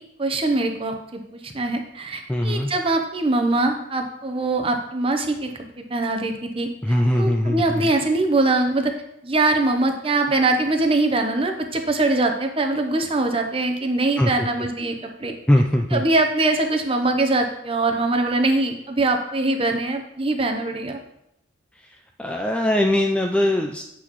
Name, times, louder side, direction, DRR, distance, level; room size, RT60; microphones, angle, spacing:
voice 1, 0.2-6.7 7.2-8.9 9.2-15.3 15.9-21.0, right 2 dB, 25° right, 4 dB, 0.7 m, -22 dB
voice 2, 2.3-2.7 6.8-7.9 14.2-14.5 15.5-16.0 22.2-23.8, left 1 dB, 5° left, 2 dB, 0.3 m, -21 dB
8.2 x 5.9 x 3.0 m, 0.80 s
head